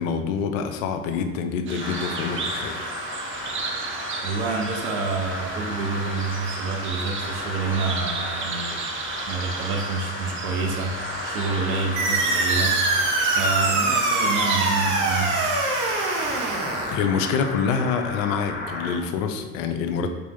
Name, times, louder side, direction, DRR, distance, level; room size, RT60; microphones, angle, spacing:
voice 1, 0.0-2.9 16.2-16.5 16.9-20.1, left 6 dB, 65° left, 6 dB, 0.5 m, -26 dB
sound 1, 1.7-16.6, right 4 dB, 30° right, 0.5 m, -34 dB
sound 2, 1.8-18.9, left 2 dB, 25° left, 0.9 m, -34 dB
voice 2, 4.2-8.9 9.3-11.0 11.2-12.8 13.3-15.6, right 4 dB, 70° right, 2 dB, 0.6 m, -28 dB
sound 3, 12.0-17.0, right 3 dB, 45° right, 0.9 m, -23 dB
3.3 x 2.9 x 3.7 m, 1.4 s
figure-of-eight pair, 55°, 43 cm